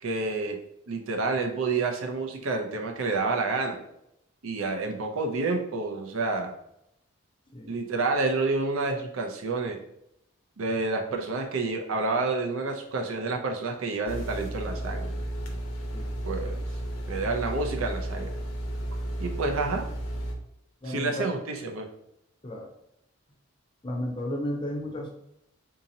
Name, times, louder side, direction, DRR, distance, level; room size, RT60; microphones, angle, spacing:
voice 1, 0.0-0.6 0.9-3.8 4.4-6.5 7.7-9.8 10.6-15.2 16.2-16.6 17.1-18.3 19.2-19.8 20.9-21.9, right 3 dB, 75° right, 3 dB, 0.6 m, -29 dB
sound 1, 14.1-20.3, right 1 dB, 70° left, 0.6 m, -33 dB
voice 2, 20.8-21.3 22.4-22.7 23.8-25.1, left 1 dB, 20° left, 0 dB, 0.6 m, -33 dB
3.8 x 2.8 x 2.7 m, 0.79 s
head